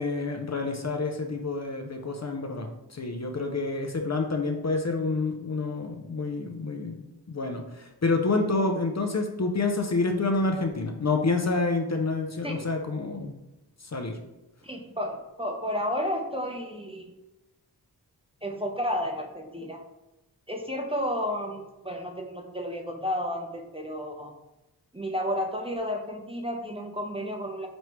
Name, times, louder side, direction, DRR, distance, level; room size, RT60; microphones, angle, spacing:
voice 1, 0.0-13.3 13.9-14.2, left 3 dB, 40° left, 4 dB, 0.6 m, -28 dB
voice 2, 14.6-17.1 18.4-19.8 20.5-24.3 24.9-27.7, equal, 15° right, 2 dB, 0.7 m, -32 dB
5.3 x 3.2 x 3.0 m, 0.96 s
wide cardioid pair, 55°, 40 cm